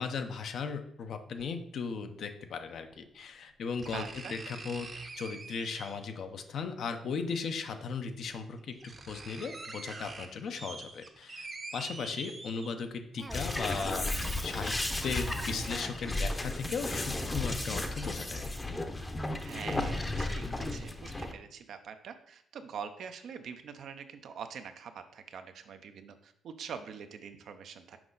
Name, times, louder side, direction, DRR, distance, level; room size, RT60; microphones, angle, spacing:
voice 1, 0.0-4.0 4.3-4.9 5.2-8.8 9.1-14.1 14.4-14.7 15.0-18.4, left 5 dB, 65° left, 7 dB, 0.7 m, -37 dB
sound 1, 1.4-1.5 2.9-3.0 3.8-6.2 7.5-7.6 8.3-8.4 8.6-13.0 13.5-13.6, right 3 dB, 35° right, 0.8 m, -45 dB
voice 2, 3.9-4.3 19.4-28.0, right 7 dB, 65° right, 8 dB, 0.6 m, -44 dB
Cough, 13.2-16.1, right 2 dB, 15° right, 0.4 m, -45 dB
sound 2, 13.3-21.3, left 2 dB, 20° left, 0.7 m, -34 dB
6.0 x 4.9 x 3.9 m, 0.69 s
cardioid pair, 90°, 0 cm